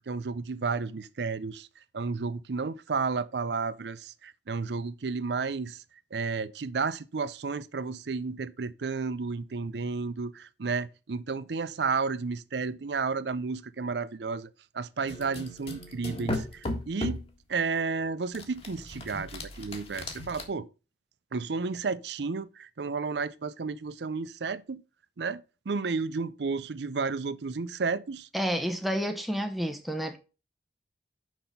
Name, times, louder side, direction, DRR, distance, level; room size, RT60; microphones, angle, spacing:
voice 1, 0.0-1.7 1.9-5.8 6.1-14.5 14.7-17.2 17.5-20.7 21.3-24.8 25.2-28.3, right 4 dB, 70° right, 0.5 m, -32 dB
sound 1, 15.1-17.3 18.3-20.4, left 1 dB, 35° left, 1.6 m, -36 dB
voice 2, 28.3-30.2, equal, ahead, 0.9 m, -30 dB
6.3 x 5.8 x 5.3 m
head